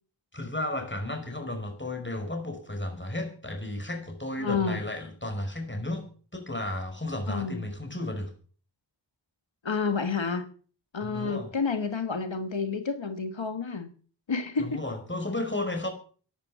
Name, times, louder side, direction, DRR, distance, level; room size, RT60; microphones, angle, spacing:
voice 1, 0.3-6.1 6.3-8.3 11.0-11.5 14.6-15.9, left 1 dB, 25° left, 5.3 m, -33 dB
voice 2, 4.4-4.8 7.3-7.6 9.6-10.5 10.9-13.9 14.3-14.8, left 5 dB, 90° left, 1.4 m, -29 dB
13.5 x 11.0 x 7.3 m
wide cardioid pair, 40°, 44 cm